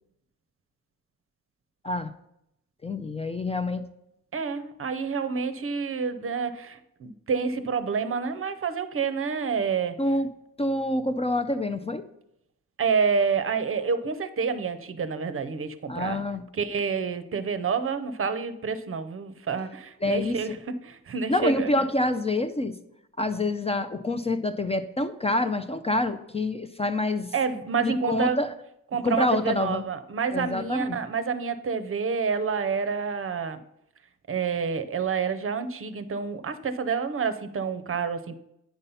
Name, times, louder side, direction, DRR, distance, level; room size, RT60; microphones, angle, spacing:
voice 1, 2.8-3.8 10.0-10.3 10.6-12.0 15.9-16.4 20.0-20.4 21.3-22.8 23.2-27.3 27.8-28.5 29.0-29.8 30.3-31.0, left 2 dB, 20° left, 9 dB, 0.4 m, -27 dB
voice 2, 4.3-10.0 12.8-16.2 16.5-21.7 27.3-28.4 28.9-33.6 34.3-38.3, right 5 dB, 45° right, 12 dB, 0.6 m, -28 dB
9.1 x 5.5 x 5.5 m, 0.80 s
wide cardioid pair, 145°, 32 cm